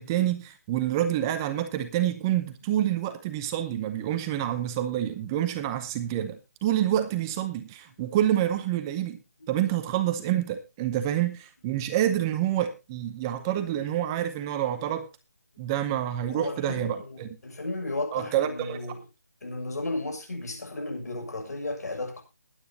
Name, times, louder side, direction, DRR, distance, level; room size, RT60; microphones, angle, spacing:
voice 1, 0.0-9.2 9.5-15.1 15.6-17.3 18.1-18.8, right 12 dB, 15° right, 0.7 m, -27 dB
voice 2, 13.3-13.6 15.6-15.7 16.2-19.0 19.4-22.2, left 2 dB, 75° left, 7.1 m, -34 dB
21.5 x 9.2 x 2.8 m
hypercardioid pair, 170°, 9 cm